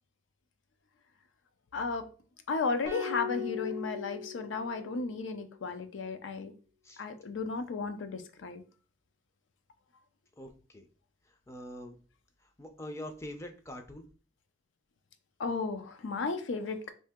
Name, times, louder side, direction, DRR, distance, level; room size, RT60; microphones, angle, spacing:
voice 1, 1.7-2.1 2.5-6.5 7.0-8.6 15.4-16.9, left 4 dB, 85° left, 0.5 m, -34 dB
sound 1, 2.8-5.2, left 6 dB, 55° left, 1.1 m, -39 dB
voice 2, 10.4-10.9 11.5-11.9 12.6-14.1, left 1 dB, 15° left, 0.4 m, -44 dB
2.7 x 2.7 x 3.5 m
head